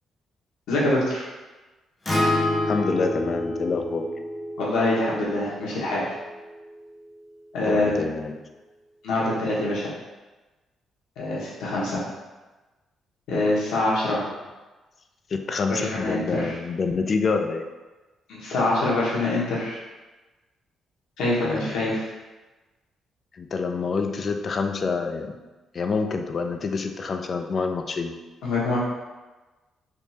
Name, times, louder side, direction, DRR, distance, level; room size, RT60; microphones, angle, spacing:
voice 1, 0.7-1.2 4.6-6.0 7.5-8.0 9.0-9.9 11.2-12.0 13.3-14.2 15.7-16.5 18.3-19.8 21.2-22.1 28.4-28.8, left 2 dB, 85° left, -6 dB, 1.1 m, -24 dB
Acoustic guitar, 2.1-6.3, left 1 dB, 15° left, 0.7 m, -28 dB
voice 2, 2.6-4.1 7.6-8.4 15.3-17.6 21.4-22.0 23.3-25.3 25.7-28.1, left 4 dB, 45° left, 6 dB, 0.3 m, -27 dB
3.5 x 2.6 x 2.8 m, 1.2 s
cardioid pair, 90°, 0 cm